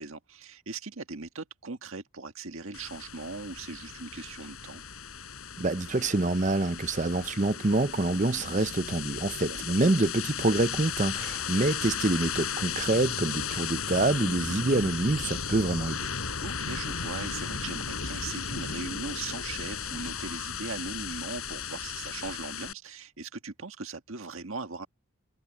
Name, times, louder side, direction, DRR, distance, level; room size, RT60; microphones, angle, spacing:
voice 1, 0.0-4.8 9.4-9.6 16.4-24.9, right 4 dB, 70° right, 1.7 m, -39 dB
sound 1, 2.7-22.7, left 7 dB, 85° left, 6.1 m, -35 dB
voice 2, 5.6-16.1, right 2 dB, 35° right, 0.7 m, -26 dB
head